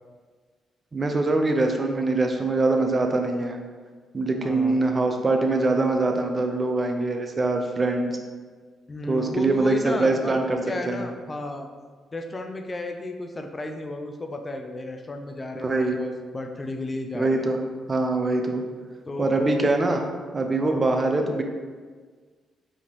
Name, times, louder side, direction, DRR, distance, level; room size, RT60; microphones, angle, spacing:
voice 1, 0.9-3.6 4.1-8.2 9.1-10.6 10.9-11.1 15.6-16.0 17.1-17.6 17.9-18.6 19.2-20.0 20.3-21.4, right 2 dB, 35° right, 4 dB, 0.6 m, -23 dB
voice 2, 4.3-5.0 8.9-10.4 10.7-11.7 12.1-17.5 19.1-19.6 20.5-20.9, left 2 dB, 30° left, 4 dB, 0.5 m, -33 dB
4.6 x 3.6 x 3.1 m, 1.5 s
cardioid pair, 70°, 0 cm